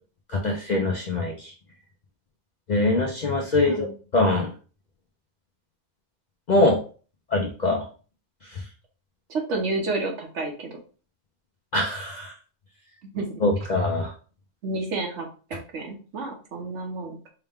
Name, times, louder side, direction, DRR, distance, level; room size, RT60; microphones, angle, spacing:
voice 1, 0.3-1.5 2.7-3.9 4.1-4.5 6.5-6.8 7.3-7.8 8.5-8.6 11.7-12.3 13.4-14.1, left 2 dB, 55° left, 0 dB, 0.5 m, -23 dB
voice 2, 3.6-4.0 9.3-10.8 13.0-13.3 14.6-17.2, right 3 dB, 65° right, 2 dB, 1.2 m, -30 dB
4.6 x 2.2 x 3.5 m, 0.38 s
omnidirectional pair, 1.3 m